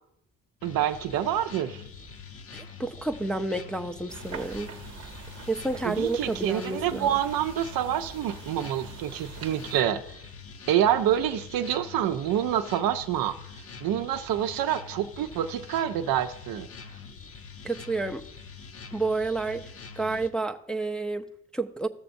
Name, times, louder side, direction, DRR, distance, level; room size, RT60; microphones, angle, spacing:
sound 1, 0.6-20.3, left 5 dB, 40° left, 0.8 m, -45 dB
voice 1, 0.6-1.8 5.8-10.0 10.7-13.4 13.8-16.7, right 10 dB, 75° right, 0.6 m, -27 dB
voice 2, 2.5-4.7 5.5-7.1 17.6-18.2 18.9-19.7 20.0-21.9, right 3 dB, ahead, 0.5 m, -30 dB
sound 2, 4.1-9.8, right 5 dB, 45° right, 0.9 m, -45 dB
14.5 x 6.8 x 2.6 m
supercardioid pair, 65°, 35 cm